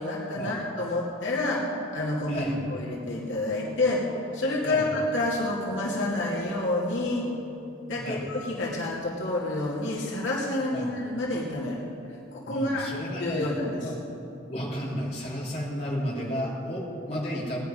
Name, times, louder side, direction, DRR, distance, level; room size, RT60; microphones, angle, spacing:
voice 1, 0.0-4.1 4.3-7.3 7.9-11.8 12.3-12.9 13.2-13.9, left 2 dB, 75° left, -5 dB, 2.4 m, -28 dB
voice 2, 2.3-2.8 4.6-4.8 8.0-8.3 10.7-10.9 12.5-13.5 13.8-13.9 14.5-17.6, equal, 35° left, -6 dB, 3.4 m, -32 dB
Wind instrument woodwind instrument, 3.6-8.3, right 3 dB, 20° right, 1.6 m, -45 dB
18.5 x 10.5 x 5.3 m, 2.8 s
head